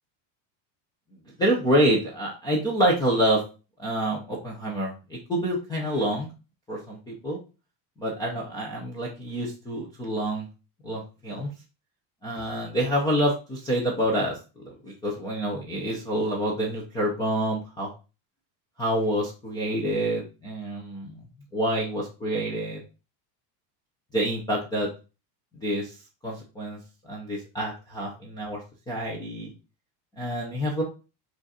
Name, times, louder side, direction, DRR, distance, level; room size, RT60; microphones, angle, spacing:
voice 1, 1.4-3.4 3.8-6.3 6.7-7.4 8.0-10.5 10.8-11.5 12.2-17.9 18.8-21.2 21.5-22.8 24.1-24.9 25.6-25.9 26.2-26.8 27.0-28.6 28.9-29.5 30.2-30.8, right 1 dB, 10° left, -3 dB, 0.3 m, -27 dB
4.9 x 2.5 x 4.0 m, 0.31 s
cardioid pair, 170°, 49 cm